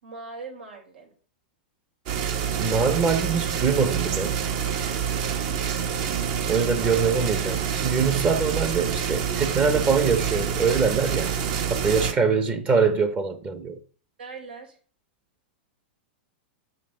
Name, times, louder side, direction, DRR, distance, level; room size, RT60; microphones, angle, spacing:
voice 1, 0.0-1.1 6.8-7.1 12.3-12.4 14.2-14.8, right 4 dB, 85° right, 3.9 m, -41 dB
sound 1, 2.1-12.1, right 7 dB, 50° right, 1.3 m, -27 dB
voice 2, 2.6-4.4 6.5-11.3 11.7-13.8, right 5 dB, 25° right, 1.0 m, -23 dB
6.4 x 5.9 x 5.6 m
hypercardioid pair, 125°, 6 cm